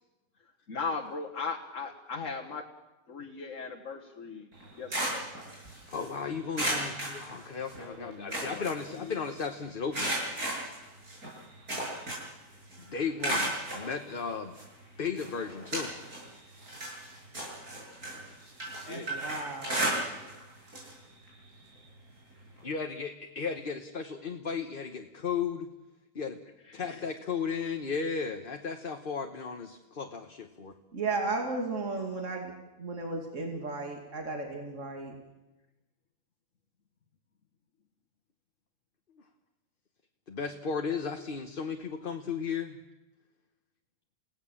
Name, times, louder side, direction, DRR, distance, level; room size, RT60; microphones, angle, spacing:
voice 1, 0.7-2.6 3.1-4.5 4.8-5.3 7.8-9.3 18.7-19.1 26.6-27.0, left 4 dB, 60° left, 0 dB, 1.9 m, -39 dB
sound 1, 4.5-6.1 6.5-7.8 8.1-9.4 9.9-12.4 12.7-13.9 14.6-14.7 15.2-16.3 16.6-20.4 20.7-20.9 21.3-21.4 22.6-22.7, right 1 dB, 85° right, 8.5 m, -34 dB
voice 2, 5.9-10.2 12.8-14.6 15.0-15.9 22.6-25.7 26.1-26.4 26.7-30.7 40.3-42.8, left 5 dB, 40° left, 5 dB, 1.2 m, -35 dB
voice 3, 18.9-19.9 30.9-32.5 32.8-35.1, right 3 dB, 55° right, 2 dB, 2.8 m, -34 dB
29.5 x 17.5 x 7.2 m, 1.0 s
omnidirectional pair, 1.5 m